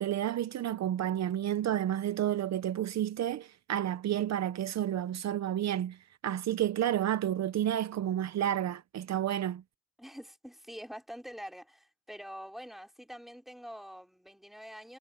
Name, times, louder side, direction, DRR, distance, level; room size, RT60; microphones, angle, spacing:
voice 1, 0.0-6.0 6.2-9.6, right 11 dB, 60° right, 0.9 m, -30 dB
voice 2, 10.0-15.0, equal, ahead, 4.2 m, -46 dB
cardioid pair, 90°, 30 cm